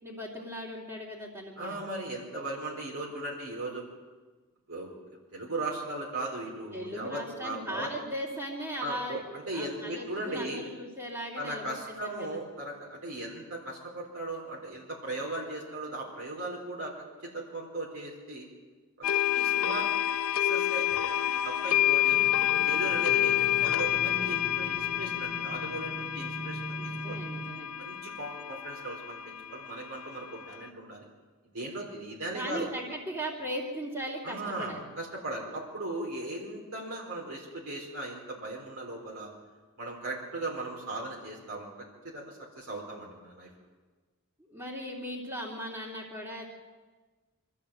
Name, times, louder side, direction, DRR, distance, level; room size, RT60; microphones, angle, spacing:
voice 1, 0.0-1.8 6.7-9.2 9.5-12.4 24.1-24.4 26.8-27.7 32.3-34.8 44.5-46.5, equal, 15° right, -7 dB, 2.9 m, -38 dB
voice 2, 1.6-3.8 4.7-4.9 5.3-7.9 8.8-10.6 11.4-16.9 17.2-18.5 19.0-19.1 19.3-19.9 20.4-22.2 22.7-26.7 27.0-27.2 27.8-31.0 31.5-32.7 34.2-39.3 39.8-41.7 42.0-43.5, right 2 dB, 70° right, -3 dB, 4.2 m, -37 dB
sound 1, 19.0-30.7, left 12 dB, 75° left, 0.7 m, -29 dB
sound 2, 22.0-27.5, right 1 dB, 10° left, 2.5 m, -42 dB
24.5 x 14.0 x 7.7 m, 1.3 s
head